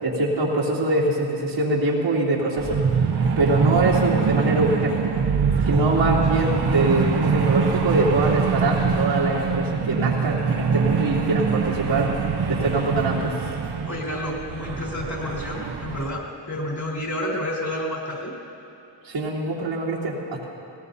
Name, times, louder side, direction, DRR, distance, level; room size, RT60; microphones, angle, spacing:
voice 1, 0.0-2.8 3.4-5.1 5.6-13.3 19.0-20.4, right 2 dB, 85° right, -7 dB, 3.3 m, -23 dB
sound 1, 2.6-16.1, right 5 dB, 55° right, 1.3 m, -24 dB
voice 2, 13.8-18.3, left 1 dB, 50° left, -4 dB, 4.3 m, -30 dB
19.0 x 18.5 x 2.8 m, 2.8 s
cardioid pair, 70°, 46 cm